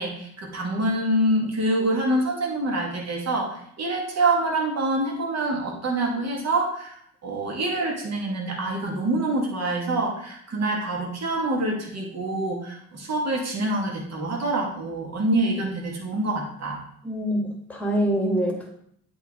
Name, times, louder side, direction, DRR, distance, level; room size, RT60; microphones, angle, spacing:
voice 1, 0.0-16.8, right 2 dB, 40° right, -1 dB, 2.1 m, -26 dB
voice 2, 17.0-18.8, equal, 5° left, 1 dB, 1.8 m, -25 dB
7.9 x 4.6 x 3.8 m, 0.69 s
figure-of-eight pair, 50°, 42 cm